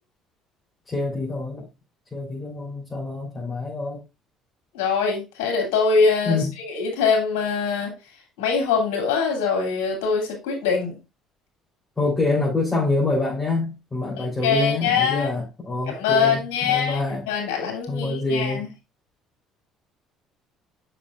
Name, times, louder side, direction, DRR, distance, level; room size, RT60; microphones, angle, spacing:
voice 1, 0.9-1.7 2.1-4.0 6.3-6.5 12.0-17.3 17.9-18.6, left 3 dB, 15° left, 3.8 m, -26 dB
voice 2, 4.7-7.9 8.4-11.0 14.2-15.3 15.9-17.0 17.3-18.7, left 5 dB, 85° left, 2.8 m, -23 dB
7.3 x 6.4 x 2.5 m
supercardioid pair, 80°, 0 cm